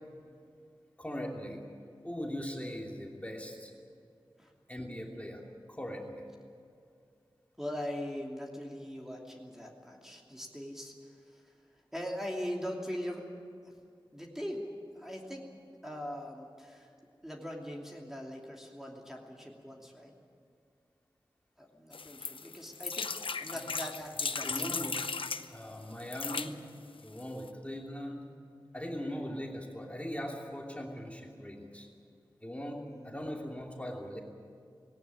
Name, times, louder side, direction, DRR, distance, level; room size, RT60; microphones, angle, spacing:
voice 1, 1.0-1.6 2.0-3.7 4.7-5.4 5.7-6.2 23.5-23.6 24.4-26.5 27.0-28.3 28.7-31.9 32.4-34.2, equal, 15° left, 0 dB, 2.9 m, -40 dB
voice 2, 7.6-11.5 11.9-13.2 14.1-14.7 14.9-16.9 17.2-20.1 21.6-24.8 32.9-33.2, equal, 5° right, -1 dB, 2.9 m, -41 dB
sound 1, 21.9-25.5 26.0-26.5 27.2-27.3 27.5-27.6, left 4 dB, 80° left, 0.8 m, -36 dB
18.5 x 18.0 x 9.8 m, 2.4 s
wide cardioid pair, 55°, 9 cm